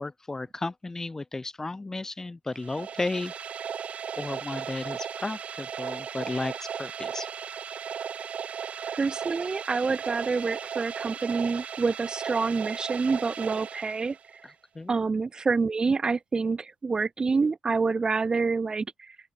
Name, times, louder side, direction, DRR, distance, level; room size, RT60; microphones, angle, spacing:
voice 1, 0.0-3.3 4.1-7.3 14.4-15.0, left 2 dB, 15° left, 1.4 m, -34 dB
sound 1, 2.5-14.5, right 7 dB, 50° right, 7.6 m, -36 dB
voice 2, 8.9-14.2 14.9-18.9, right 4 dB, 30° right, 3.1 m, -27 dB
open air
cardioid pair, 120°, 3 cm